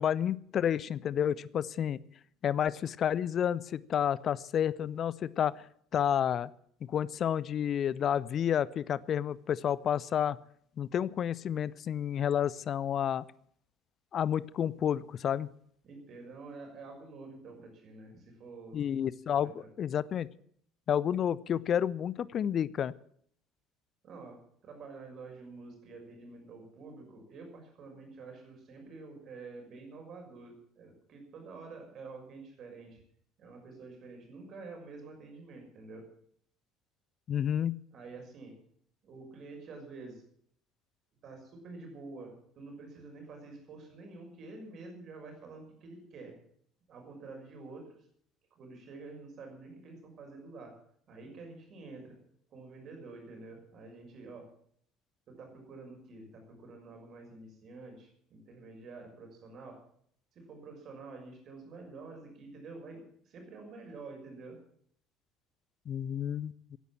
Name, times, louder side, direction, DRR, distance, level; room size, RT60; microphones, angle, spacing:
voice 1, 0.0-2.0 2.4-5.6 5.9-6.5 6.9-10.4 10.8-13.2 14.1-15.5 18.7-19.5 19.8-20.3 20.9-22.9 37.3-37.8 65.9-66.8, left 9 dB, 45° left, 21 dB, 0.6 m, -30 dB
voice 2, 15.8-18.8 19.4-19.7 24.0-24.4 24.6-33.0 33.4-36.0 37.9-38.5 39.0-40.2 41.2-46.3 46.9-47.9 48.6-50.7 51.1-52.2 52.5-54.4 55.3-59.8 60.3-64.6, right 3 dB, 45° right, 2 dB, 6.1 m, -48 dB
16.5 x 11.0 x 7.4 m, 0.65 s
figure-of-eight pair, 55°, 0 cm